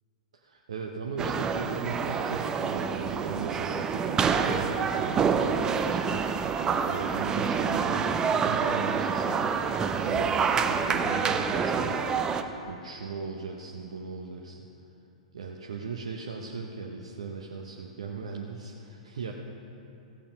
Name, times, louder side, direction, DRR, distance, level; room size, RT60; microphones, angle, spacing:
voice 1, 0.4-9.6 10.0-12.2 12.7-14.7 15.3-19.3, right 4 dB, 65° right, 1 dB, 0.8 m, -38 dB
sound 1, 1.2-12.4, right 6 dB, 20° right, 0.6 m, -27 dB
15.0 x 8.6 x 5.3 m, 2.7 s
figure-of-eight pair, 100°, 4 cm